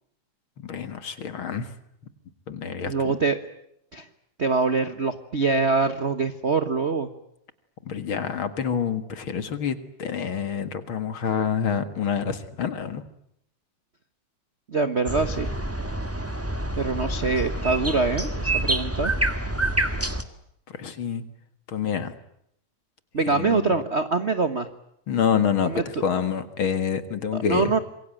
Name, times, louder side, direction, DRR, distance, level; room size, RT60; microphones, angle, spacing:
voice 1, 0.6-1.7 2.5-3.2 7.9-13.0 20.7-21.2 21.7-22.1 23.4-23.7 25.1-27.7, left 7 dB, 50° left, 11 dB, 2.2 m, -27 dB
voice 2, 2.9-3.4 3.9-4.0 4.4-7.1 14.7-15.5 16.8-19.1 23.1-24.7 25.6-26.0 27.4-27.8, right 4 dB, 50° right, 10 dB, 0.7 m, -24 dB
sound 1, 15.1-20.2, right 1 dB, 5° right, 1.2 m, -27 dB
27.0 x 22.5 x 9.0 m, 0.75 s
omnidirectional pair, 3.3 m